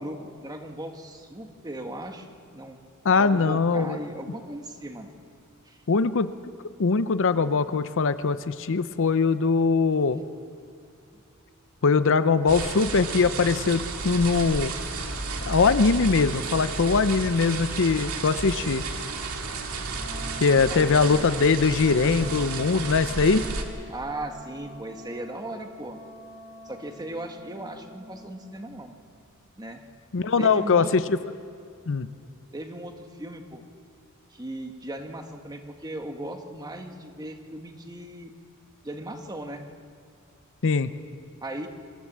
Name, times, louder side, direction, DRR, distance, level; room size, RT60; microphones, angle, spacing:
voice 1, 0.0-2.8 3.1-5.1 5.6-5.8 11.1-11.2 20.7-21.2 23.9-26.0 26.6-29.0 29.6-29.8 30.4-31.1 32.5-33.6 34.3-38.3 38.8-39.6 41.4-41.7, right 1 dB, 20° right, 5 dB, 1.4 m, -37 dB
voice 2, 3.0-4.0 5.9-6.3 6.8-10.2 11.8-14.7 15.5-18.8 20.4-23.5 30.1-31.0 31.9-32.1 40.6-40.9, left 4 dB, 60° left, 13 dB, 0.6 m, -22 dB
sound 1, 12.5-23.6, right 3 dB, 80° right, 2.0 m, -32 dB
Wind instrument woodwind instrument, 19.9-28.4, equal, 35° right, 3.7 m, -46 dB
25.0 x 14.5 x 7.4 m, 2.5 s
head